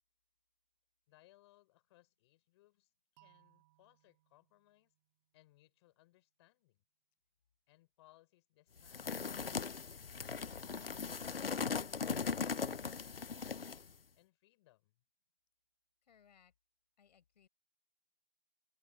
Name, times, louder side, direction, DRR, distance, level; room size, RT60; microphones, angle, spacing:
voice 1, 1.1-4.9 5.3-6.8 7.7-10.8 14.1-15.0, left 17 dB, 30° left, 6.5 m, -69 dB
sound 1, 3.2-6.1, right 20 dB, 25° right, 2.5 m, -71 dB
sound 2, 8.8-13.9, left 5 dB, 70° left, 1.1 m, -39 dB
voice 2, 16.0-16.5 17.0-17.5, left 8 dB, 45° left, 6.0 m, -67 dB
open air
figure-of-eight pair, 145°, 30 cm